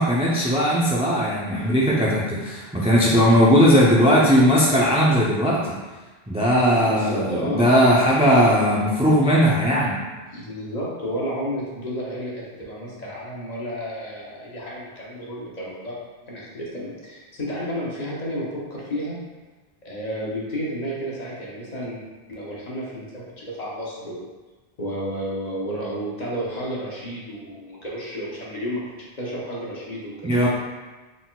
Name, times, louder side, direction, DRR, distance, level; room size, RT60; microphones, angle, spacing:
voice 1, 0.0-5.8 6.3-10.0 30.2-30.5, equal, 10° right, -6 dB, 0.4 m, -18 dB
voice 2, 6.7-7.7 10.3-16.0 16.2-19.2 19.8-22.0 22.3-24.3 24.8-30.5, equal, 45° left, -5 dB, 0.9 m, -31 dB
4.1 x 3.8 x 2.3 m, 1.2 s
omnidirectional pair, 1.0 m